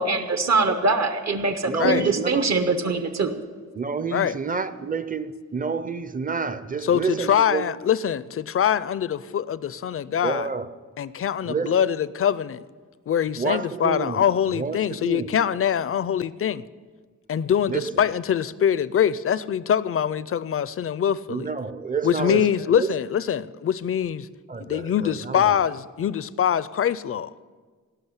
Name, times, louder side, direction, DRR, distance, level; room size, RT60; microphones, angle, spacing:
voice 1, 0.0-3.4, right 3 dB, 60° right, 0.9 m, -23 dB
voice 2, 1.7-2.5 3.7-7.7 10.2-10.7 11.4-11.7 13.4-14.2 14.5-15.3 17.7-17.9 21.3-22.9 24.5-25.6, right 5 dB, 25° right, 0.5 m, -29 dB
voice 3, 6.8-10.5 11.0-12.6 13.1-16.6 17.3-21.5 22.0-24.3 24.6-27.3, left 9 dB, 45° left, 0.4 m, -24 dB
17.0 x 6.3 x 9.7 m
wide cardioid pair, 170°, 31 cm